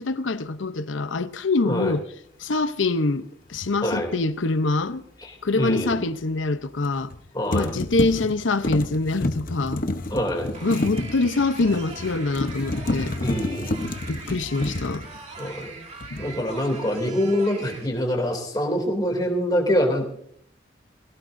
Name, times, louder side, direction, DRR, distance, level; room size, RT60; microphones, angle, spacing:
voice 1, 0.0-2.1 2.4-5.0 5.4-7.1 7.5-9.8 10.6-13.2 14.1-15.0 16.1-16.2, left 3 dB, 90° left, 0.8 m, -24 dB
voice 2, 1.6-1.9 3.8-4.1 5.2-6.0 7.3-7.7 10.1-10.5 13.2-13.7 15.4-15.7 16.2-20.1, equal, 20° left, 2.8 m, -25 dB
sound 1, 3.5-3.7 6.8-7.2 7.5-15.7 16.0-16.5, left 1 dB, 45° left, 0.9 m, -30 dB
sound 2, 10.5-17.9, right 4 dB, 35° right, 2.3 m, -41 dB
21.5 x 17.0 x 2.6 m
head